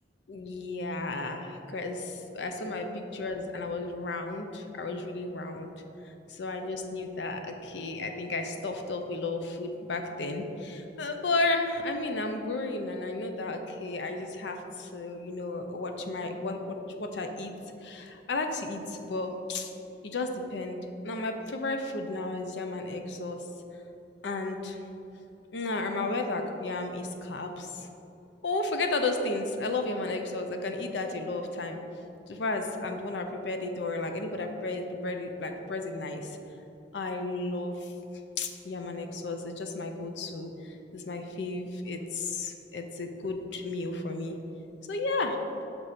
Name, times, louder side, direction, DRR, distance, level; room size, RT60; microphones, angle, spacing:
voice 1, 0.3-5.7 6.4-17.5 17.8-19.7 20.0-20.8 21.0-23.4 24.2-24.8 25.5-27.9 28.4-31.8 32.3-36.3 36.9-37.9 38.4-44.4 44.9-45.4, left 2 dB, 75° left, 5 dB, 0.6 m, -33 dB
5.9 x 4.2 x 5.0 m, 2.9 s
head